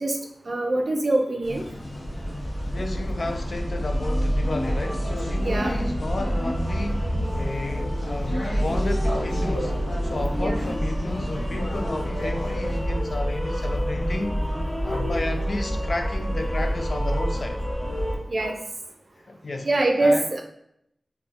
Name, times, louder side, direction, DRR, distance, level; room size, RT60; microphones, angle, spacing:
voice 1, 0.5-1.6 5.4-5.8 10.4-10.7 18.3-18.5 19.6-20.4, right 2 dB, 55° right, 3 dB, 0.5 m, -23 dB
sound 1, 1.4-12.8, left 1 dB, 85° left, 0.8 m, -34 dB
sound 2, 1.9-18.2, equal, 30° left, 1.4 m, -27 dB
voice 2, 2.7-9.7 10.0-14.4 14.8-17.6 19.2-19.7 20.0-20.3, left 2 dB, 55° left, 5 dB, 0.4 m, -32 dB
Bark, 5.3-5.5 5.9-6.0 6.4-6.5 6.8-6.9 8.3-8.4 10.9-11.0 11.8-12.1 12.8-13.2 14.3-14.4 14.9-15.2 15.9-16.3 17.1-17.4 18.3-18.8 19.8-19.9, equal, 10° right, 0.8 m, -41 dB
3.7 x 2.3 x 2.8 m, 0.75 s
wide cardioid pair, 90°, 0 cm